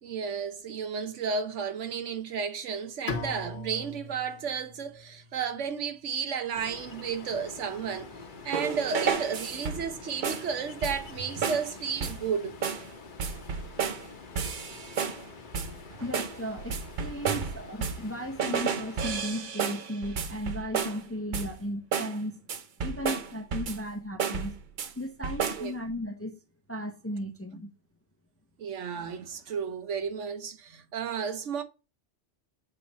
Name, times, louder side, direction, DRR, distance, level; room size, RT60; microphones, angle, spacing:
voice 1, 0.0-8.1 8.4-12.6 15.9-16.1 17.3-17.4 25.6-25.7 28.6-31.6, right 6 dB, 85° right, 1.2 m, -33 dB
Bowed string instrument, 3.1-6.1, left 4 dB, 75° left, 1.1 m, -40 dB
Ocean, 6.6-19.2, left 4 dB, 45° left, 1.0 m, -47 dB
sound 1, 8.5-9.9 10.2-10.5 10.8-11.1 11.4-11.7 12.0-12.3 12.6-12.9 13.2-14.1 14.4-15.2 15.5-15.8 16.1-18.1 18.4-21.0 21.3-21.6 21.9-22.2 22.5-23.9 24.2-24.9 25.2-25.7, right 6 dB, 50° right, 0.7 m, -32 dB
voice 2, 16.0-22.4 22.8-24.6 25.0-26.4 26.7-27.7, equal, 15° left, 0.5 m, -35 dB
7.1 x 3.3 x 4.1 m
omnidirectional pair, 1.2 m